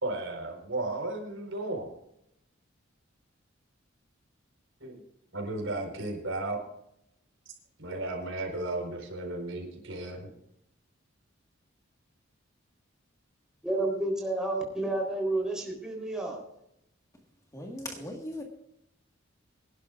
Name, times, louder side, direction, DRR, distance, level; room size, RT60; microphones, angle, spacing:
voice 1, 0.0-1.9 4.8-5.0 5.3-6.6 7.8-10.3, right 2 dB, 75° right, 1 dB, 4.5 m, -34 dB
voice 2, 13.6-16.4, right 2 dB, 5° right, -1 dB, 3.8 m, -30 dB
voice 3, 17.5-18.4, left 1 dB, 15° left, 1 dB, 1.7 m, -38 dB
25.0 x 11.5 x 2.5 m, 0.78 s
head